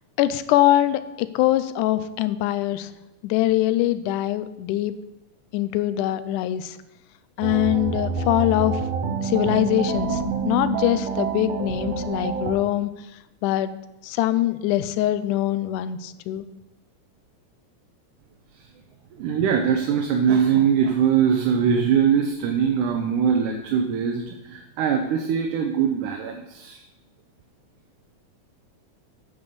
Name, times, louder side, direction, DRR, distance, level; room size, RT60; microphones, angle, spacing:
voice 1, 0.2-2.9 3.2-4.9 5.5-6.8 7.4-8.8 9.2-12.9 13.4-13.7 14.0-16.5, left 13 dB, 90° left, 14 dB, 2.1 m, -23 dB
sound 1, 7.4-12.5, right 5 dB, 65° right, 2.0 m, -27 dB
voice 2, 19.2-26.8, right 7 dB, 80° right, 3 dB, 2.3 m, -22 dB
8.9 x 5.3 x 6.7 m, 0.94 s
omnidirectional pair, 3.5 m